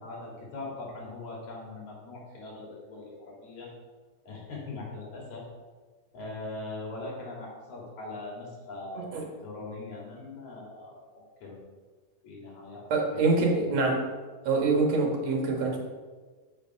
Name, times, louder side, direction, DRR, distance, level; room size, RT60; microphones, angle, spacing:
voice 1, 0.0-3.7 4.3-5.5 6.1-11.7 12.2-13.2, left 2 dB, 60° left, -3 dB, 3.6 m, -41 dB
voice 2, 12.9-14.1 14.5-15.8, right 3 dB, 60° right, 0 dB, 2.4 m, -25 dB
7.0 x 6.7 x 5.7 m, 1.4 s
omnidirectional pair, 3.8 m